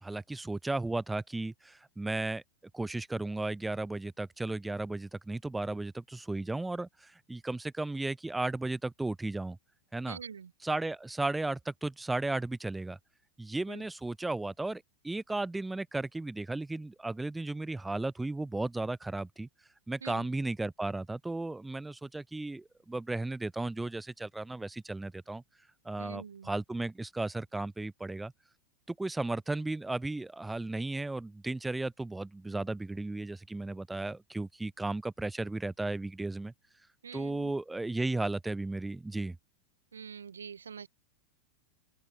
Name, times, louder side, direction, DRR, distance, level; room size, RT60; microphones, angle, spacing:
voice 1, 0.0-2.4 2.7-9.6 9.9-10.2 10.6-13.0 13.4-19.5 19.9-25.4 25.8-28.3 28.9-36.5 37.1-39.4, right 2 dB, 5° right, 2.4 m, -35 dB
voice 2, 10.1-10.5 13.7-13.8 20.0-20.3 26.0-26.5 37.0-37.5 39.9-40.9, right 7 dB, 70° right, 3.5 m, -45 dB
open air
figure-of-eight pair, 90°, 0 cm